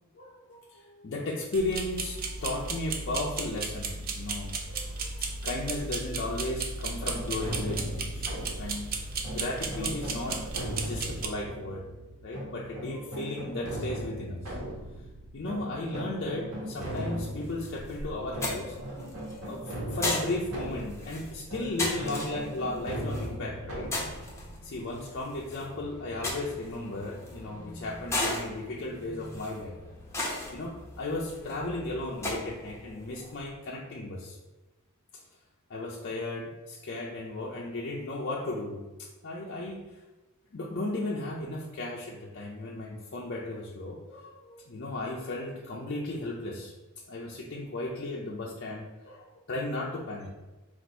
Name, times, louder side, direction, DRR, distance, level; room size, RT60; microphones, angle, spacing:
voice 1, 0.1-8.3 8.6-11.8 12.2-14.5 15.3-19.0 19.5-23.9 24.6-29.8 30.5-34.4 35.1-35.2 35.7-38.8 39.2-39.8 40.5-46.7 47.1-50.3, left 2 dB, 50° left, -3 dB, 0.5 m, -35 dB
sound 1, 1.5-11.3, right 4 dB, 40° right, 0.4 m, -35 dB
sound 2, 7.1-25.8, equal, 80° right, 1.3 m, -39 dB
sound 3, 16.8-33.5, left 2 dB, 10° left, 0.7 m, -38 dB
4.1 x 2.5 x 4.4 m, 1.1 s
head